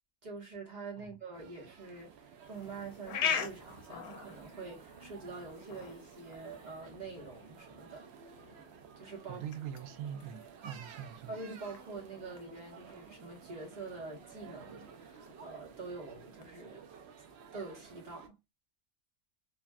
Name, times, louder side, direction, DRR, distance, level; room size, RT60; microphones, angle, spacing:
voice 1, 0.2-8.4 9.0-9.4 11.3-16.9 17.5-18.3, right 3 dB, 30° right, 1.2 m, -46 dB
sound 1, 1.3-18.3, right 6 dB, 65° right, 0.7 m, -54 dB
sound 2, 2.4-16.5, left 7 dB, 70° left, 1.0 m, -43 dB
voice 2, 9.3-11.3, right 9 dB, 80° right, 1.0 m, -43 dB
3.4 x 2.4 x 2.2 m
omnidirectional pair, 1.5 m